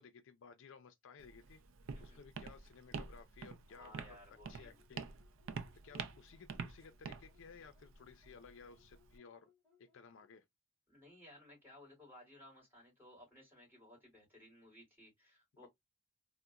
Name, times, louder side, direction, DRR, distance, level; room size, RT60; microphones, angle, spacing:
voice 1, 0.0-1.6 2.0-4.2 4.5-5.1 5.8-9.5 9.8-10.4 15.6-15.7, left 5 dB, 65° left, 0.4 m, -57 dB
Walk footsteps, 1.2-9.2, right 5 dB, 70° right, 0.4 m, -48 dB
voice 2, 3.7-4.8 10.9-15.7, left 1 dB, 10° right, 2.4 m, -59 dB
sound 1, 4.5-10.4, left 7 dB, 5° left, 1.3 m, -73 dB
3.9 x 2.1 x 2.3 m
head